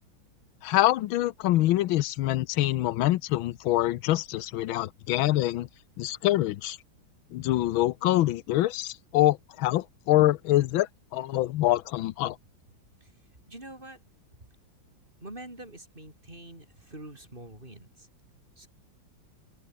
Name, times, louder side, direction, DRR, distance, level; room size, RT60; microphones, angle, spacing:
voice 1, 0.6-5.7 6.0-6.8 7.3-12.4, left 15 dB, 85° left, 1.5 m, -25 dB
voice 2, 13.5-14.0 15.2-18.1 18.6-18.7, right 1 dB, 25° right, 5.4 m, -45 dB
open air
omnidirectional pair, 2.2 m